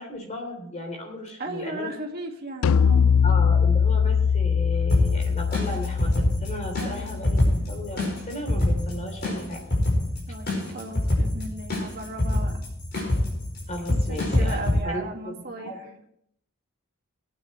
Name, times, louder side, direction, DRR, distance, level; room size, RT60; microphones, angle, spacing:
voice 1, 0.0-1.9 3.2-7.4 7.7-9.6 13.7-16.0, left 1 dB, 35° left, 2 dB, 3.5 m, -35 dB
voice 2, 1.4-3.2 6.8-7.2 10.3-12.6 13.9-15.7, right 2 dB, 45° right, 1 dB, 2.1 m, -36 dB
sound 1, 2.6-8.0, left 6 dB, 75° left, 0.3 m, -22 dB
sound 2, 4.9-14.8, left 1 dB, 50° left, 5.1 m, -26 dB
21.0 x 9.5 x 3.2 m, 0.71 s
head